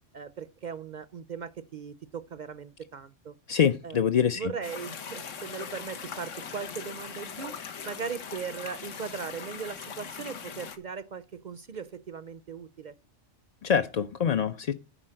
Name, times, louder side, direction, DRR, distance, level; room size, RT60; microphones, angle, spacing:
voice 1, 0.1-3.3 3.8-4.0 4.4-7.6 7.8-12.9, right 6 dB, 55° right, 0.5 m, -38 dB
voice 2, 3.5-4.5 13.6-14.7, left 8 dB, 50° left, 0.5 m, -25 dB
sound 1, 4.6-10.8, left 6 dB, 90° left, 1.4 m, -40 dB
10.0 x 4.2 x 7.5 m
omnidirectional pair, 1.3 m